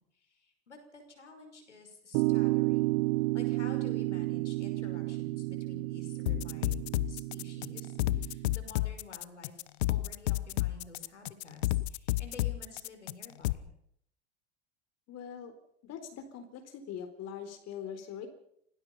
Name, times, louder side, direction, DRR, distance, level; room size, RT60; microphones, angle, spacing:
voice 1, 0.2-3.0 3.3-9.6 9.9-13.6, left 3 dB, 85° left, 5 dB, 5.7 m, -51 dB
sound 1, 2.1-8.5, right 21 dB, 55° right, 1.0 m, -32 dB
sound 2, 6.3-13.5, left 16 dB, 65° left, 0.9 m, -31 dB
voice 2, 15.1-15.5 15.8-18.3, left 8 dB, 45° left, 8 dB, 4.0 m, -42 dB
26.5 x 18.5 x 5.6 m, 0.71 s
figure-of-eight pair, 80°, 34 cm